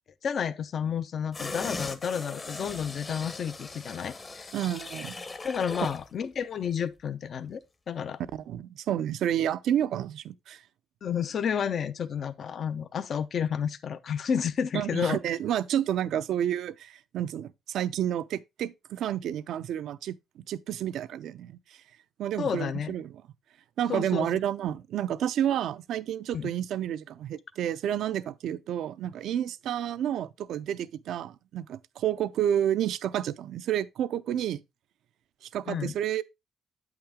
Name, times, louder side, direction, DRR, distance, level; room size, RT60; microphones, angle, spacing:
voice 1, 0.2-4.5 5.4-7.6 7.9-8.2 11.0-15.2 22.4-22.9 23.9-24.3 26.3-26.5 35.7-35.9, left 7 dB, 55° left, 0.6 m, -31 dB
sound 1, 1.3-6.1 6.4-6.6, left 3 dB, 30° left, 0.9 m, -39 dB
voice 2, 4.5-5.2 8.3-10.6 14.7-20.2 20.5-21.6 22.2-23.1 23.8-34.6 35.5-36.2, right 10 dB, 75° right, 0.5 m, -30 dB
8.0 x 5.9 x 3.5 m
cardioid pair, 90°, 0 cm